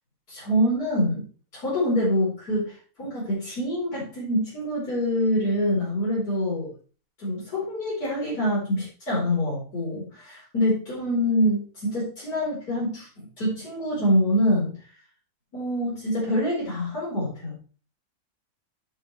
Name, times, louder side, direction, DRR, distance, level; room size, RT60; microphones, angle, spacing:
voice 1, 0.3-1.2 1.5-6.7 7.2-14.8 15.5-17.5, equal, 75° left, -7 dB, 5.1 m, -25 dB
10.5 x 9.0 x 3.3 m, 0.37 s
omnidirectional pair, 1.6 m